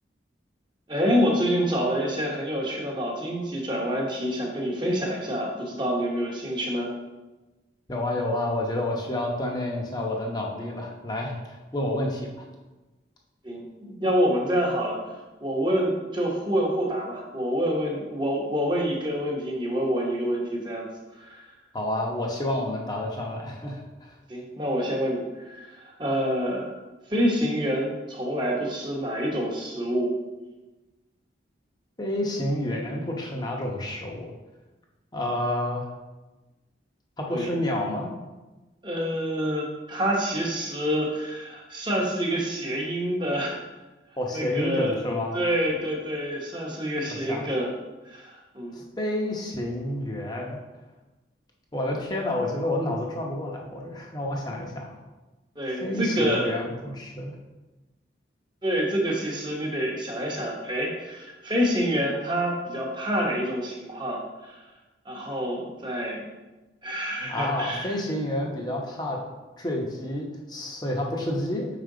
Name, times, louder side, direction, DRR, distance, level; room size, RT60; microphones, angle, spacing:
voice 1, 0.9-6.9 13.4-15.0 15.4-20.9 21.2-21.5 24.3-26.8 27.1-30.1 37.3-37.5 38.8-43.6 44.3-44.9 45.3-47.7 48.0-48.8 55.6-56.5 58.6-64.6 65.0-66.2 66.8-67.9, equal, 25° right, -2 dB, 1.1 m, -27 dB
voice 2, 7.9-12.5 21.7-24.2 32.0-34.3 35.1-35.9 37.2-38.1 44.2-45.4 47.1-47.4 48.7-50.6 51.7-55.0 55.8-57.3 67.3-69.2 69.6-71.7, left 1 dB, 20° left, 0 dB, 0.9 m, -29 dB
5.7 x 5.0 x 3.8 m, 1.1 s
head